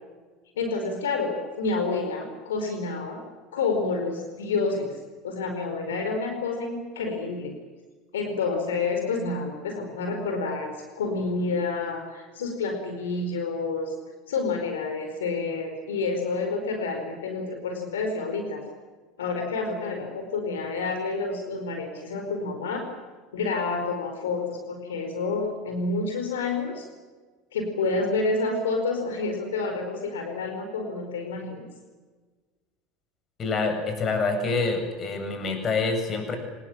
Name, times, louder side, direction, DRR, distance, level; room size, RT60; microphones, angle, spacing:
voice 1, 0.5-3.2 3.5-7.5 8.1-14.0 14.3-18.6 19.2-22.9 23.3-26.9 27.5-31.6, left 3 dB, 85° left, 5 dB, 4.7 m, -29 dB
voice 2, 33.4-36.4, left 4 dB, 35° left, 6 dB, 7.8 m, -26 dB
25.5 x 20.0 x 8.9 m, 1.4 s
hypercardioid pair, 85°, 0 cm